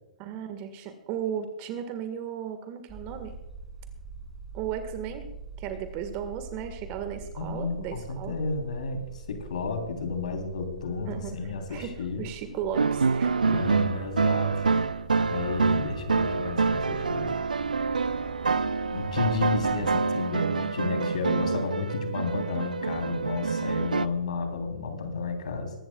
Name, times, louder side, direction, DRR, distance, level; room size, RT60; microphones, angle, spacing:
voice 1, 0.2-3.3 4.5-5.3 5.6-8.4 11.0-13.6, right 8 dB, 35° right, 8 dB, 1.6 m, -35 dB
sound 1, 2.9-19.9, right 2 dB, ahead, 3.8 m, -45 dB
voice 2, 7.4-12.2 13.4-14.7 15.3-17.3 18.9-25.7, left 4 dB, 70° left, 4 dB, 3.4 m, -32 dB
sound 2, 12.7-24.1, right 4 dB, 90° right, 0.6 m, -27 dB
22.5 x 12.5 x 2.3 m, 1.0 s
hypercardioid pair, 130°, 4 cm